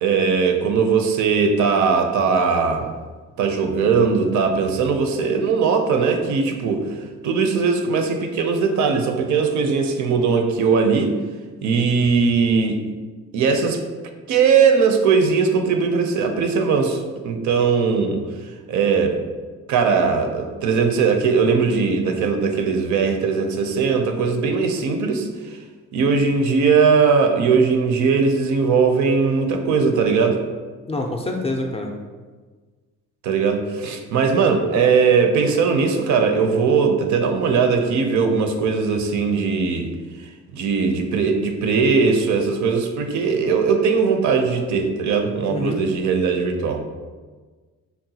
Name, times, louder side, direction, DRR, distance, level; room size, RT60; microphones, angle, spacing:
voice 1, 0.0-2.9 3.4-11.1 11.6-12.8 13.3-13.8 14.3-18.2 18.7-19.2 19.7-25.6 25.9-30.4 33.2-39.9 40.2-46.8, right 5 dB, 70° right, 5 dB, 0.5 m, -19 dB
voice 2, 30.9-31.9 45.5-45.8, left 2 dB, 20° left, 2 dB, 0.3 m, -26 dB
3.9 x 2.1 x 2.7 m, 1.4 s
cardioid pair, 90°, 30 cm